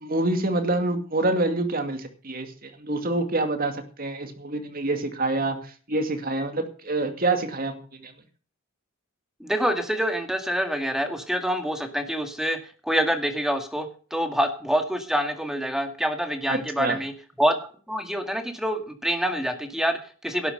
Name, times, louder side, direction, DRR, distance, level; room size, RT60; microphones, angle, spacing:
voice 1, 0.0-8.1 16.5-17.0, right 2 dB, 40° right, 7 dB, 2.4 m, -27 dB
voice 2, 9.4-12.6 12.8-17.1 17.4-20.5, equal, ahead, 6 dB, 2.0 m, -26 dB
12.0 x 9.7 x 6.7 m, 0.39 s
head